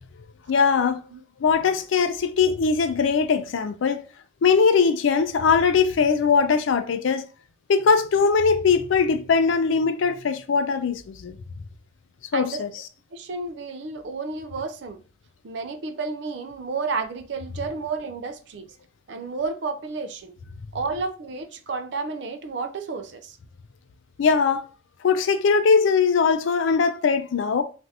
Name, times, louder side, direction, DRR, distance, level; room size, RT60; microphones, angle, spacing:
voice 1, 0.5-1.0 1.4-4.1 4.4-7.2 7.7-11.4 12.3-12.7 24.2-24.7 25.0-27.6, left 5 dB, 80° left, 0.4 m, -20 dB
voice 2, 12.3-12.6 13.1-15.0 15.4-18.7 19.1-20.3 20.7-23.4, right 4 dB, 65° right, 0.4 m, -31 dB
3.2 x 2.5 x 2.7 m
head